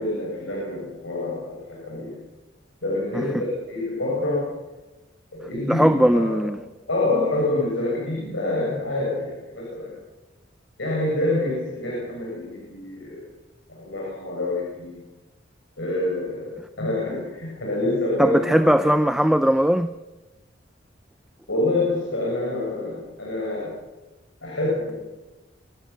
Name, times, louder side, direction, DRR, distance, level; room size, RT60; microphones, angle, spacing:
voice 1, 0.0-2.2 2.8-4.5 5.3-6.6 6.9-9.9 10.8-13.2 13.7-15.0 15.8-18.9 21.5-23.7 24.4-24.9, left 2 dB, 75° left, 7.8 m, -27 dB
voice 2, 5.7-6.6 18.2-19.9, equal, 5° right, 0.6 m, -19 dB
26.5 x 14.5 x 7.7 m
head